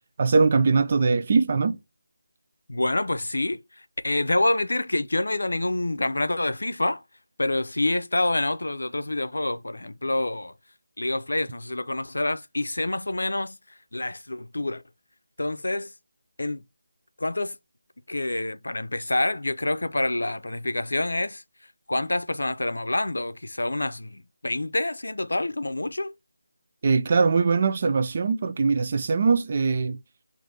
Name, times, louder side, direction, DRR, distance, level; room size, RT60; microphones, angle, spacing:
voice 1, 0.2-1.8 26.8-30.0, right 4 dB, 30° right, 0.3 m, -21 dB
voice 2, 2.7-3.6 4.0-7.0 7.4-10.5 11.0-13.6 13.9-14.8 15.4-15.9 16.4-16.6 17.2-17.6 18.1-21.4 21.9-26.1, left 2 dB, 90° left, 0.5 m, -27 dB
3.9 x 2.6 x 3.4 m
figure-of-eight pair, 175°, 0 cm